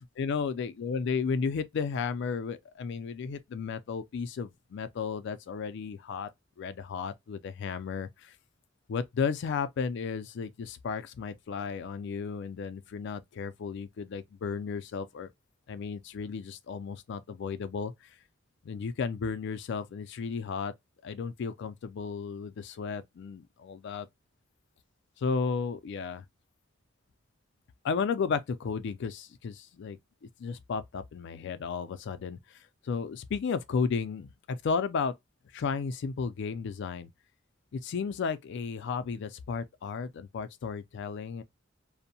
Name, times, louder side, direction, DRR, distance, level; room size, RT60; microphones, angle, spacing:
voice 1, 0.0-6.3 6.6-8.3 8.9-15.3 15.7-17.9 18.6-20.7 21.0-24.1 25.2-26.2 27.8-32.6 32.8-35.1 35.5-37.1 37.7-41.4, left 5 dB, 65° left, 0.4 m, -34 dB
2.6 x 2.1 x 2.7 m
head